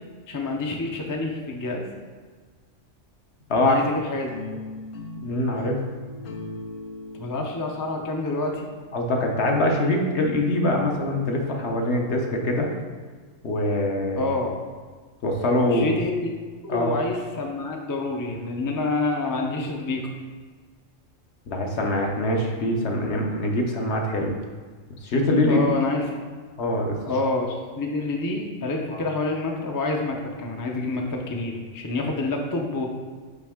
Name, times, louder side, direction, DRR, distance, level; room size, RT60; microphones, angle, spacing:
voice 1, 0.3-1.9 3.6-4.3 7.1-8.7 14.2-14.5 15.7-16.3 16.6-20.1 25.5-26.0 27.1-32.9, left 3 dB, 25° left, 1 dB, 0.4 m, -27 dB
sound 1, 4.3-9.4, left 2 dB, 90° left, 1.1 m, -39 dB
voice 2, 5.2-5.8 8.9-12.7 13.4-14.3 15.2-15.9 16.7-16.9 21.5-24.3 25.0-25.7 26.6-27.0 28.9-29.0, left 1 dB, 60° left, 1 dB, 1.1 m, -23 dB
6.0 x 5.2 x 3.6 m, 1.5 s
omnidirectional pair, 1.3 m